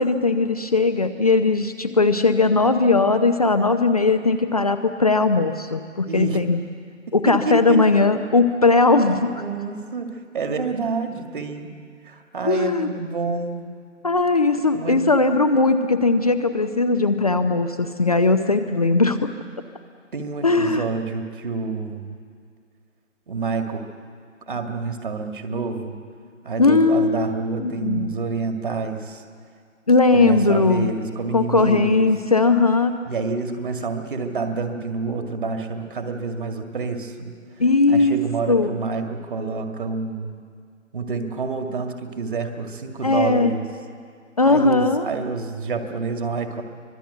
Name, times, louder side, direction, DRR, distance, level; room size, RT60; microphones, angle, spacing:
voice 1, 0.0-6.6 7.1-9.3 12.4-12.9 14.0-19.3 20.4-20.8 26.6-27.3 27.6-28.1 29.9-30.9 31.3-33.0 37.6-38.1 38.5-38.7 43.0-43.5 44.4-45.1, left 3 dB, 30° left, 7 dB, 0.7 m, -19 dB
voice 2, 6.1-6.4 7.1-7.2 7.4-7.8 9.1-11.7 12.0-13.8 14.7-15.0 20.1-22.2 23.3-23.9 24.5-26.0 26.4-29.2 30.1-32.0 33.1-37.4 37.9-40.4 40.9-43.6 44.4-46.6, right 4 dB, 40° right, 5 dB, 2.2 m, -28 dB
24.5 x 20.5 x 8.0 m, 2.2 s
figure-of-eight pair, 155°, 39 cm